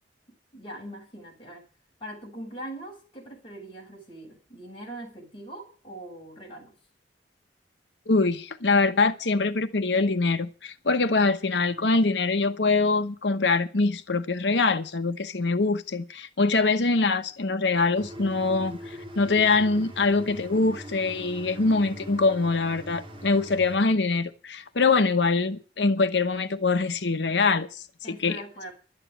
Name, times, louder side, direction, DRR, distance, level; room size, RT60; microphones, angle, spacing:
voice 1, 0.3-1.6 2.0-6.7 28.0-28.7, right 1 dB, 30° left, 6.7 m, -42 dB
voice 2, 8.1-28.4, left 3 dB, 75° left, 1.0 m, -24 dB
sound 1, 17.9-23.8, equal, 30° right, 2.1 m, -42 dB
12.0 x 9.1 x 9.1 m
head